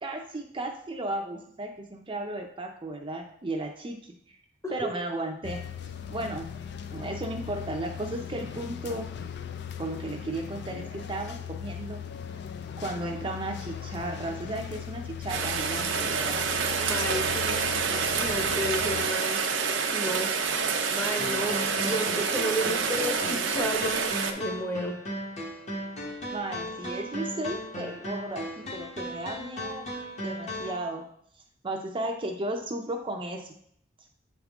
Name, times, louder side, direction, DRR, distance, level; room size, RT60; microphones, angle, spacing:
voice 1, 0.0-4.1 4.7-5.6 6.1-6.5 6.9-9.1 9.8-12.0 12.8-16.4 26.3-29.9 30.2-31.1 31.6-33.5, right 2 dB, 25° right, 2 dB, 0.5 m, -34 dB
sound 1, 5.4-19.1, left 8 dB, 65° left, 0.4 m, -39 dB
Rain, 15.3-24.3, right 5 dB, 90° right, 0.7 m, -28 dB
voice 2, 16.8-17.7 18.1-19.4 19.9-20.3 20.9-24.0 24.3-25.0, equal, 15° left, 3 dB, 0.9 m, -32 dB
sound 2, 21.2-30.8, left 1 dB, 40° left, 1.1 m, -36 dB
7.9 x 3.7 x 3.5 m, 0.66 s
head